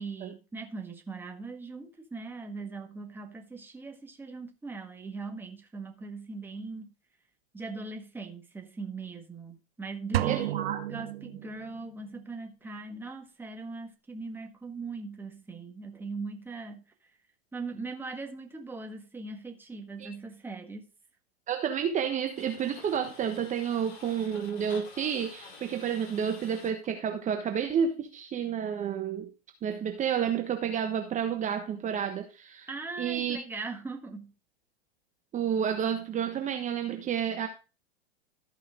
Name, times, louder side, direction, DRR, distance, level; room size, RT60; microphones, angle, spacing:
voice 1, 0.0-6.9 7.5-10.6 10.9-16.8 17.5-20.9 32.7-34.3, right 3 dB, 5° right, 1.5 m, -40 dB
sound 1, 10.1-11.9, right 14 dB, 70° right, 0.6 m, -32 dB
voice 2, 10.3-10.8 20.0-20.1 21.5-29.3 29.6-32.7 33.0-33.4 35.3-37.5, right 8 dB, 25° right, 1.3 m, -30 dB
sound 2, 22.3-26.9 31.5-31.6, left 5 dB, 55° left, 4.7 m, -49 dB
14.0 x 5.5 x 3.7 m
hypercardioid pair, 115°, 31 cm